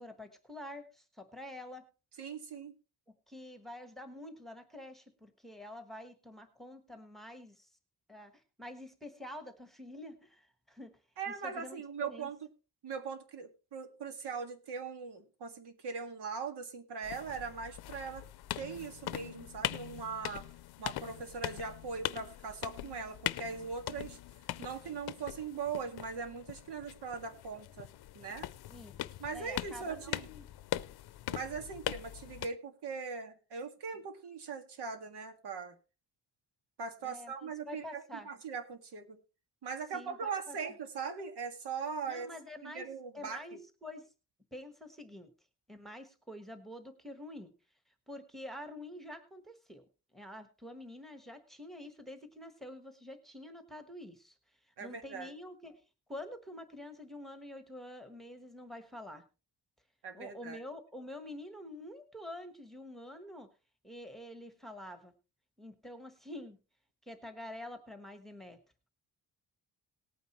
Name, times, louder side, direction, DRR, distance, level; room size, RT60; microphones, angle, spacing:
voice 1, 0.0-1.9 3.3-7.7 8.1-10.9 11.3-12.3 28.7-30.5 37.0-38.3 39.9-40.8 42.1-42.9 43.1-44.1 44.5-45.3 45.7-47.5 48.1-49.8 50.1-54.3 54.8-55.8 56.1-59.2 60.1-63.5 63.8-65.1 65.6-66.6 67.1-68.6, left 1 dB, ahead, 8 dB, 1.3 m, -47 dB
voice 2, 2.2-2.8 11.2-12.4 12.8-18.3 18.6-20.5 20.8-24.2 24.6-27.9 28.1-28.5 29.2-30.3 31.3-35.8 36.8-39.2 39.6-42.3 42.6-43.6 54.8-55.3 60.0-60.6, right 5 dB, 85° right, 7 dB, 1.9 m, -40 dB
sound 1, 17.0-32.5, left 14 dB, 70° left, 0.6 m, -41 dB
18.5 x 9.2 x 3.0 m, 0.31 s
wide cardioid pair, 170°, 39 cm